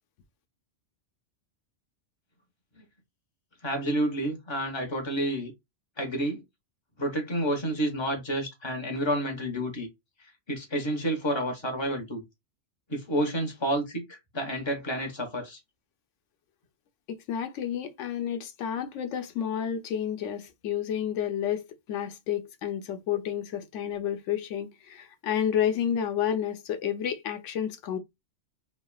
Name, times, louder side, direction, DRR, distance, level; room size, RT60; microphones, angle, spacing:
voice 1, 3.6-5.5 6.0-6.4 7.0-9.9 10.5-12.2 12.9-15.6, right 1 dB, 25° left, 0.9 m, -29 dB
voice 2, 17.1-21.6 21.9-28.0, left 9 dB, 85° left, 0.9 m, -30 dB
3.1 x 2.2 x 2.2 m
omnidirectional pair, 1.2 m